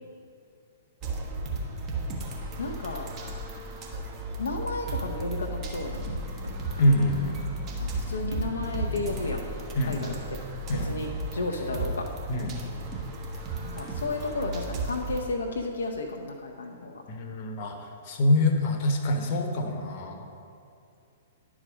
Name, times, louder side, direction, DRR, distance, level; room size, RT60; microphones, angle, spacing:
sound 1, 1.0-15.2, right 2 dB, 30° right, 1.3 m, -35 dB
voice 1, 2.6-3.1 4.4-6.0 8.1-9.4 9.8-10.4 10.7-12.0 13.6-17.0, left 2 dB, 65° left, 1 dB, 0.6 m, -33 dB
sound 2, 5.8-13.5, equal, 85° left, 1.0 m, -43 dB
voice 2, 6.8-7.4 9.8-10.0 10.7-10.9 12.3-12.6 17.1-20.3, left 1 dB, 40° left, 3 dB, 1.0 m, -25 dB
10.5 x 5.0 x 5.0 m, 2.6 s
figure-of-eight pair, 110°, 0 cm